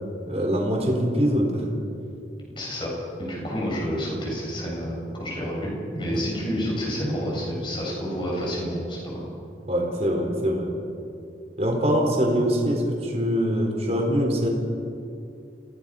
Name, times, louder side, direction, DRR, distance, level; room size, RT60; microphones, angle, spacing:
voice 1, 0.3-1.6 6.1-6.2 9.7-10.7 11.6-14.5, equal, 35° right, 0 dB, 4.2 m, -23 dB
voice 2, 2.6-2.9 3.2-9.2, equal, 30° left, -3 dB, 6.9 m, -29 dB
30.0 x 17.5 x 5.7 m, 2.6 s
head